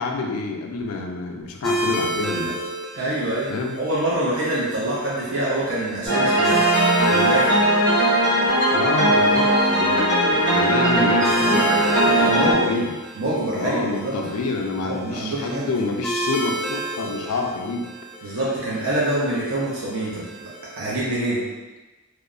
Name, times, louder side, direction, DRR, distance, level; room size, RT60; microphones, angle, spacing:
voice 1, 0.0-2.6 3.5-3.8 8.7-13.0 13.5-17.9 18.2-18.4, left 3 dB, 75° left, 2 dB, 0.4 m, -27 dB
sound 1, 1.6-20.8, right 1 dB, ahead, 0.3 m, -32 dB
voice 2, 2.9-3.5 3.8-6.6 7.1-7.6 12.1-12.7 13.2-14.1 14.8-15.7 18.2-20.2 20.8-21.4, right 1 dB, 65° right, -7 dB, 0.5 m, -25 dB
sound 2, 6.1-12.5, right 1 dB, 40° right, 1.2 m, -19 dB
2.9 x 2.0 x 2.3 m, 1.2 s
head